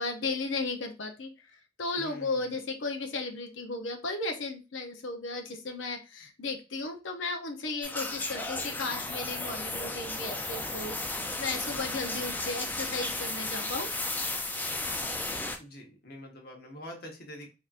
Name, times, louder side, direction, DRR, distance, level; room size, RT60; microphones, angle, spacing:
voice 1, 0.0-13.9, left 3 dB, 85° left, 5 dB, 0.7 m, -35 dB
voice 2, 1.9-2.5 11.9-12.2 15.6-17.5, equal, 55° left, 2 dB, 1.0 m, -45 dB
sound 1, 7.8-15.6, left 2 dB, 10° left, 0.4 m, -34 dB
3.5 x 2.8 x 2.4 m, 0.30 s
head